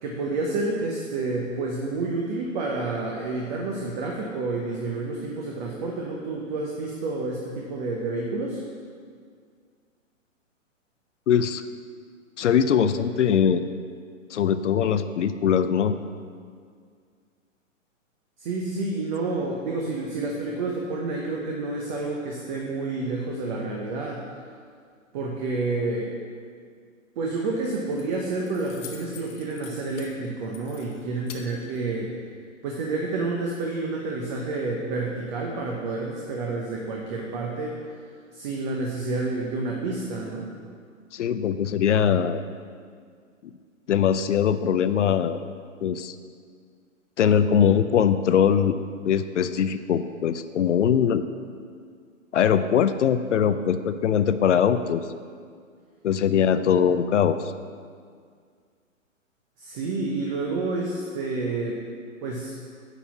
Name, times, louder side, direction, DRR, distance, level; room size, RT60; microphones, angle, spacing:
voice 1, 0.0-8.6 18.4-24.2 25.1-26.1 27.2-32.1 32.6-37.8 38.3-40.5 59.6-61.8 62.2-62.5, right 3 dB, 35° right, -1 dB, 1.0 m, -29 dB
voice 2, 11.3-11.6 12.4-13.6 14.3-15.9 41.1-42.4 43.9-45.4 45.8-46.1 47.2-48.8 49.0-51.3 52.3-55.0 56.0-57.4, left 8 dB, 65° left, 11 dB, 0.6 m, -21 dB
Keys jangling, 27.4-32.4, left 7 dB, 30° left, 0.8 m, -48 dB
9.9 x 4.2 x 7.1 m, 2.1 s
hypercardioid pair, 130°, 40 cm